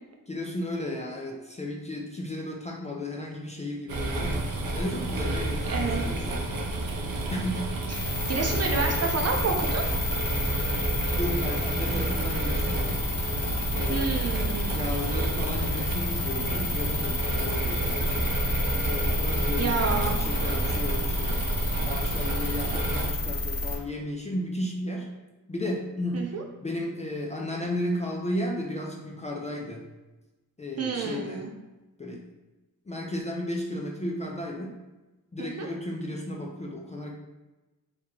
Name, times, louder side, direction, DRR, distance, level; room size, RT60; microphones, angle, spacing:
voice 1, 0.3-4.4 4.7-6.6 7.3-7.6 11.2-13.0 13.7-14.3 14.6-18.3 18.9-19.8 20.2-21.4 21.8-25.1 25.5-26.2 26.6-29.9 30.6-31.4 32.0-32.2 32.9-34.8 35.3-37.1, left 1 dB, 20° left, -1 dB, 0.4 m, -34 dB
sound 1, 3.9-23.1, right 2 dB, 75° right, 0.7 m, -30 dB
voice 2, 5.7-6.0 7.9-9.8 13.9-14.8 19.6-20.2 26.1-26.4 30.8-31.5 35.4-35.7, right 4 dB, 45° right, 1 dB, 0.6 m, -29 dB
sound 2, 7.9-23.8, left 2 dB, 45° left, 0.8 m, -30 dB
2.9 x 2.8 x 3.7 m, 1.1 s
wide cardioid pair, 115°, 36 cm